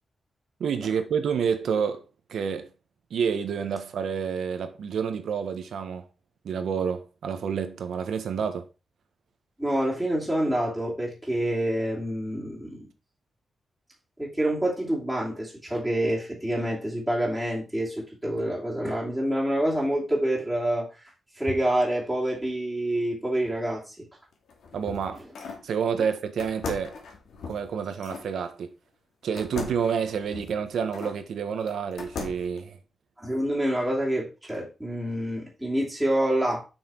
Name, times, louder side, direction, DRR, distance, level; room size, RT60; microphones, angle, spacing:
voice 1, 0.6-2.0 2.3-2.7 3.1-6.1 6.4-8.7 24.7-25.2 25.6-27.0 27.5-28.7 29.2-32.8, right 6 dB, 80° right, 1.2 m, -29 dB
voice 2, 9.6-12.9 14.2-20.9 21.4-24.1 33.2-36.7, right 1 dB, 5° right, 2.6 m, -27 dB
sound 1, 24.3-25.7 26.4-28.3 29.4-31.2 31.7-32.6, left 4 dB, 85° left, 2.3 m, -39 dB
6.6 x 5.9 x 4.5 m
wide cardioid pair, 150°, 0 cm